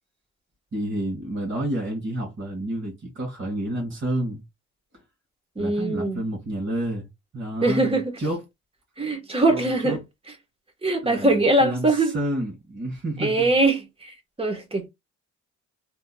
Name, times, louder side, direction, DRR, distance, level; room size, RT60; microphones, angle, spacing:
voice 1, 0.7-4.4 5.6-7.1 7.3-8.4 9.5-10.0 11.0-13.5, right 1 dB, 40° right, 1.7 m, -29 dB
voice 2, 5.6-6.2 7.6-8.1 9.0-10.0 10.8-12.2 13.2-14.9, right 2 dB, 20° right, 1.2 m, -22 dB
3.4 x 3.0 x 2.2 m
cardioid pair, 90°, 30 cm